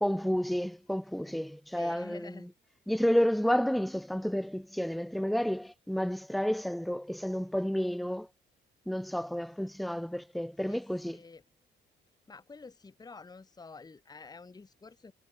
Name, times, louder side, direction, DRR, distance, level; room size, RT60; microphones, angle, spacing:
voice 1, 0.0-2.2 2.9-8.3 8.9-11.2, equal, ahead, 0.4 m, -30 dB
voice 2, 1.7-2.5 10.7-10.8 11.1-11.4 12.3-15.1, left 4 dB, 20° left, 1.0 m, -48 dB
cardioid pair, 90°, 20 cm